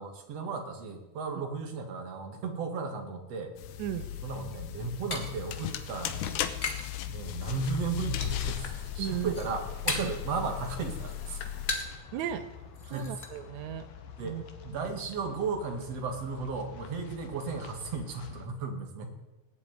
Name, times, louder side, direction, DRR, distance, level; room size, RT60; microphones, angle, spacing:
voice 1, 0.0-3.6 4.2-6.3 7.1-11.4 12.9-13.1 14.2-19.1, right 4 dB, 55° right, 5 dB, 2.7 m, -35 dB
sound 1, 3.6-11.8, left 11 dB, 75° left, 2.3 m, -37 dB
voice 2, 3.8-4.1 9.0-9.3 10.0-10.1 12.1-12.5 12.8-13.9 14.2-14.4 14.7-14.9, right 11 dB, 70° right, 9 dB, 2.2 m, -35 dB
sound 2, 4.5-7.0 7.3-7.8 8.2-8.7 9.0-10.3 10.6-12.1 12.4-12.5 12.7-13.3, left 3 dB, 30° left, 1.2 m, -37 dB
sound 3, 8.5-18.5, left 7 dB, 90° left, 3.0 m, -48 dB
18.5 x 7.9 x 9.3 m, 1.1 s
omnidirectional pair, 3.7 m